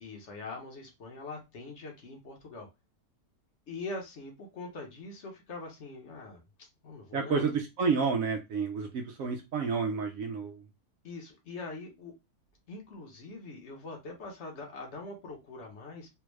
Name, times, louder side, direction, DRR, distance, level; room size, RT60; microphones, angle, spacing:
voice 1, 0.0-2.7 3.7-7.4 11.0-12.1 12.7-16.1, left 3 dB, 55° left, 2 dB, 1.1 m, -43 dB
voice 2, 7.1-10.6, right 5 dB, 70° right, 4 dB, 0.9 m, -30 dB
3.4 x 2.3 x 3.1 m, 0.23 s
omnidirectional pair, 1.6 m